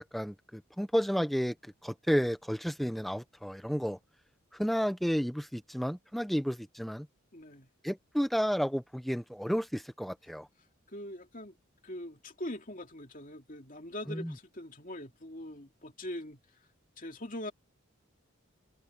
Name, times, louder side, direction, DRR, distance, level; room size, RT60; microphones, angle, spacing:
voice 1, 0.0-4.0 4.5-7.1 7.8-10.5 14.1-14.3, equal, ahead, 1.0 m, -32 dB
voice 2, 7.3-7.7 10.9-11.5 11.8-16.4 17.0-17.5, left 1 dB, 40° left, 2.7 m, -42 dB
open air
head